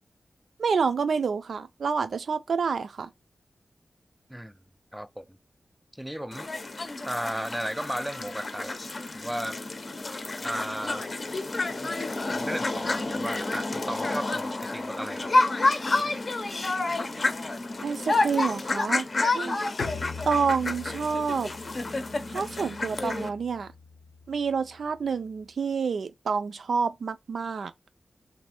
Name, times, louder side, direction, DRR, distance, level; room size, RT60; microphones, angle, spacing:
voice 1, 0.6-3.1 17.8-19.1 19.3-19.6 20.3-21.5 22.3-23.7 24.3-27.7, right 5 dB, 80° right, 0.4 m, -28 dB
voice 2, 4.9-5.3 6.0-6.5 7.0-8.8 9.1-9.6 10.4-11.1 12.3-15.3 19.2-19.3, equal, 5° right, 0.3 m, -34 dB
sound 1, 6.3-23.3, left 2 dB, 40° left, 0.6 m, -29 dB
Bowed string instrument, 19.8-25.4, left 5 dB, 85° left, 0.7 m, -42 dB
3.1 x 2.6 x 4.2 m
wide cardioid pair, 130°, 0 cm